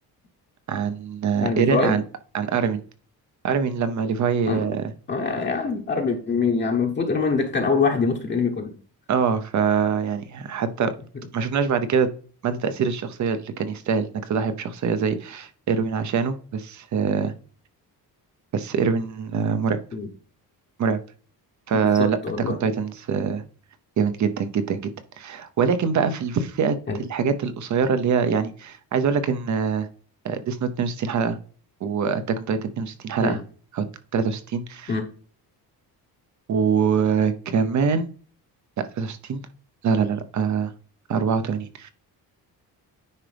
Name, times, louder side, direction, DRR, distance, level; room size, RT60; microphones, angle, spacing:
voice 1, 0.7-2.0 2.3-2.8 3.4-4.9 9.1-10.9 11.3-12.1 12.4-17.3 18.5-19.8 20.8-21.0 21.7-22.2 22.5-23.4 24.0-29.9 30.2-31.4 31.8-33.4 33.7-33.9 34.1-35.0 36.5-38.1 39.0-39.4 39.8-40.7 41.1-41.9, right 6 dB, 50° right, 11 dB, 0.8 m, -24 dB
voice 2, 1.4-2.0 4.5-4.6 5.1-8.8 19.9-20.1 22.0-22.6 26.9-27.0 33.2-33.4 34.9-35.1, left 4 dB, 30° left, 0 dB, 1.0 m, -24 dB
9.7 x 5.0 x 3.4 m, 0.42 s
cardioid pair, 170°, 38 cm